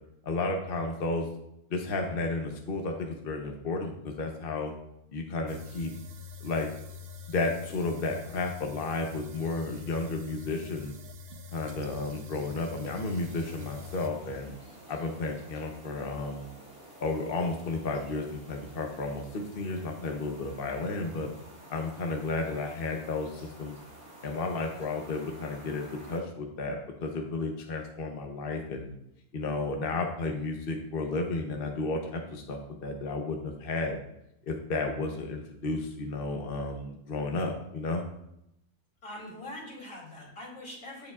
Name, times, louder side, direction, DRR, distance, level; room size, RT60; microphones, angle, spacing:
voice 1, 0.2-1.3 1.7-4.7 5.1-5.9 6.4-6.7 7.3-10.9 11.5-14.5 14.9-16.5 17.0-21.3 21.7-23.8 24.2-28.9 29.3-34.0 34.5-38.0, left 3 dB, 45° left, 2 dB, 1.0 m, -32 dB
sound 1, 5.5-14.1, left 5 dB, 60° right, 0.7 m, -44 dB
sound 2, 13.1-26.2, right 1 dB, 30° right, 3.4 m, -51 dB
voice 2, 39.0-41.1, left 1 dB, 75° left, -4 dB, 3.4 m, -43 dB
15.5 x 5.2 x 2.4 m, 0.80 s
omnidirectional pair, 1.4 m